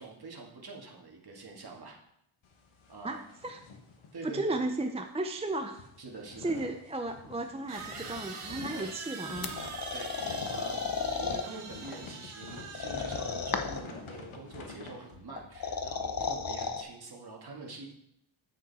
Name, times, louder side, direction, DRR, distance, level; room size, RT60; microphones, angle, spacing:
voice 1, 0.0-2.0 2.9-3.2 4.1-4.6 6.0-6.6 8.7-8.9 9.9-10.8 11.2-17.9, right 3 dB, 50° right, 0 dB, 2.3 m, -45 dB
sound 1, 2.4-4.7 5.0-5.2 5.5-16.7, left 4 dB, 75° left, 1.5 m, -48 dB
voice 2, 3.0-3.6 4.2-5.9 6.4-9.5, right 2 dB, 15° right, 5 dB, 0.5 m, -34 dB
sound 2, 6.1-6.2 7.7-13.8, right 4 dB, 85° right, 1.8 m, -44 dB
sound 3, 9.4-11.4 12.7-13.9 15.4-16.8, left 5 dB, 45° left, 0.9 m, -34 dB
9.4 x 8.3 x 4.3 m, 0.74 s
wide cardioid pair, 120°, 49 cm